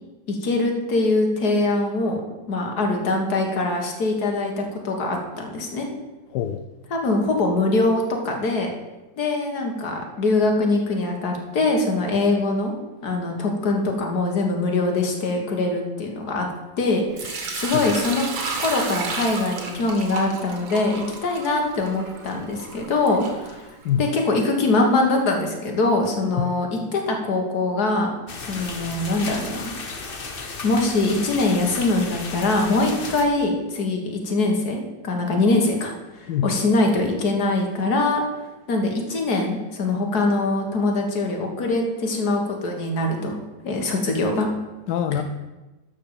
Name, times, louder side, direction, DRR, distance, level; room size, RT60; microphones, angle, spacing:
voice 1, 0.3-2.2 2.5-5.9 6.9-8.7 9.2-12.7 13.0-16.5 16.8-18.3 18.6-23.7 24.0-28.1 28.4-29.7 30.6-38.2 38.7-43.4 43.6-44.5, left 2 dB, 55° left, 2 dB, 2.1 m, -23 dB
voice 2, 6.3-6.6 17.5-17.9 23.8-24.0 26.3-26.5 36.3-36.5 44.9-45.2, left 9 dB, 70° left, 7 dB, 1.1 m, -25 dB
Sink (filling or washing) / Liquid, 17.2-24.1, right 4 dB, 80° right, 2.3 m, -33 dB
sound 1, 28.3-33.3, left 4 dB, 35° left, 0.9 m, -34 dB
12.0 x 5.4 x 7.0 m, 1.1 s
omnidirectional pair, 2.1 m